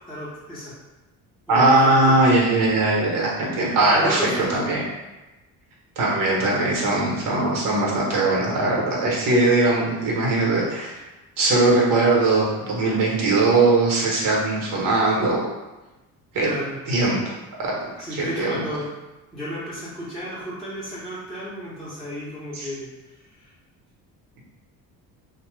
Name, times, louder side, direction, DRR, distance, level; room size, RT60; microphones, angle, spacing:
voice 1, 0.1-0.8 1.5-2.2 3.5-4.7 16.4-16.8 18.0-18.9 19.3-23.5, equal, ahead, -11 dB, 0.8 m, -33 dB
voice 2, 1.5-4.8 6.0-11.0 11.4-15.4 16.3-16.5 16.9-17.3 17.6-18.6 22.5-22.7, right 2 dB, 60° right, -3 dB, 1.0 m, -20 dB
2.8 x 2.1 x 3.1 m, 1.1 s
cardioid pair, 125°, 37 cm